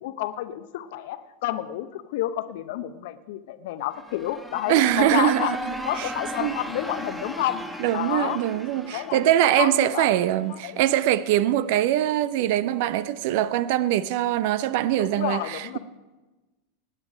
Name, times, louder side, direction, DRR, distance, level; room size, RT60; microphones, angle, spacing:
voice 1, 0.0-5.5 5.8-7.6 7.9-8.4 8.9-9.2 9.6-10.1 10.6-10.8 15.0-15.8, left 13 dB, 60° left, 0.7 m, -30 dB
sound 1, 3.8-10.6, equal, 5° right, 1.2 m, -37 dB
voice 2, 4.7-5.6 6.0-6.1 6.4-6.6 7.8-15.8, right 13 dB, 55° right, 0.5 m, -23 dB
17.5 x 9.1 x 5.0 m
figure-of-eight pair, 85°, 0 cm